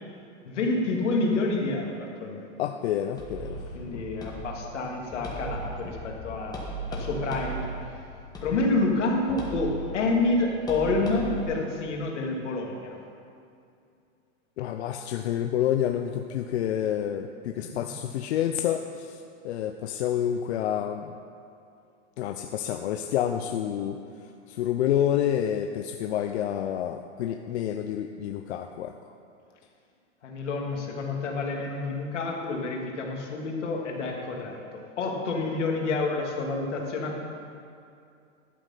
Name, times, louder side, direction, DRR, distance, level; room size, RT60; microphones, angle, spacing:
voice 1, 0.4-2.6 3.7-6.6 6.9-7.7 8.4-13.0 17.6-17.7 30.2-37.2, left 3 dB, 90° left, 0 dB, 2.4 m, -28 dB
voice 2, 2.6-3.6 3.9-4.0 14.6-21.2 22.2-24.0 24.5-28.9, left 10 dB, 65° left, 6 dB, 0.7 m, -28 dB
sound 1, 3.2-11.4, right 2 dB, 10° left, 1.8 m, -38 dB
12.0 x 7.6 x 5.7 m, 2.5 s
hypercardioid pair, 145°, 35 cm